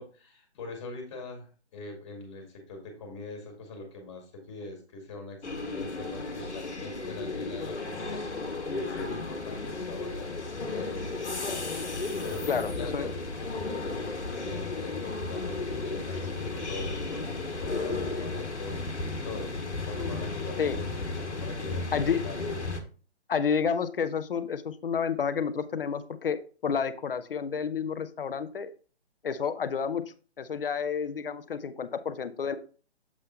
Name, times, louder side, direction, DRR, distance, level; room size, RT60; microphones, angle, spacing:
voice 1, 0.0-10.3 10.6-13.1 13.4-19.5 19.9-22.4, left 3 dB, 25° left, 2 dB, 2.0 m, -42 dB
sound 1, 5.4-22.8, left 3 dB, 90° left, 1.4 m, -34 dB
voice 2, 12.5-13.1 20.6-20.8 21.9-22.2 23.3-28.7 29.2-30.0 30.4-32.6, left 6 dB, 55° left, 12 dB, 0.7 m, -30 dB
7.4 x 3.6 x 4.3 m, 0.38 s
figure-of-eight pair, 150°, 33 cm